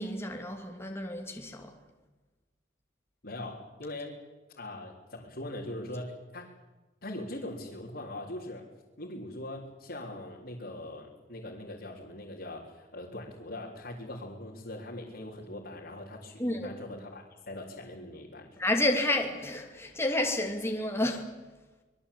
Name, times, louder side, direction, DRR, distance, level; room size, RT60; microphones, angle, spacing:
voice 1, 0.0-1.7 16.4-16.7 18.6-21.3, left 1 dB, 15° left, 2.5 m, -30 dB
voice 2, 3.2-4.1 4.6-6.5 7.0-8.7 9.0-18.6, left 1 dB, 60° left, 3.8 m, -41 dB
25.5 x 21.5 x 8.6 m
head